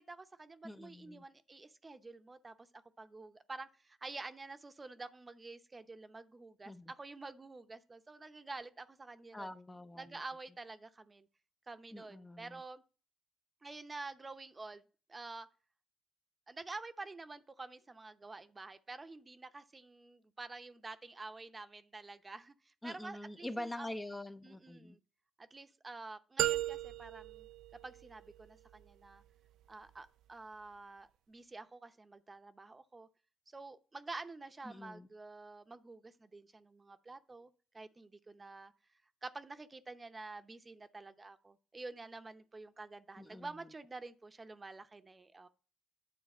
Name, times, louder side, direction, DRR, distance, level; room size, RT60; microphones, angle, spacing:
voice 1, 0.0-9.5 10.0-11.3 11.7-12.8 13.6-14.8 15.1-15.5 16.5-23.9 24.4-25.0 25.4-27.5 27.8-29.2 29.7-33.1 33.5-38.7 39.2-45.5, right 3 dB, 25° right, 0.7 m, -49 dB
voice 2, 0.6-1.2 6.7-6.9 9.3-10.1 11.9-12.6 22.8-25.0 34.6-35.1 43.2-43.5, left 1 dB, 15° left, 0.6 m, -45 dB
sound 1, 26.4-28.4, right 14 dB, 85° right, 0.4 m, -36 dB
9.7 x 4.0 x 7.1 m
cardioid pair, 90°, 0 cm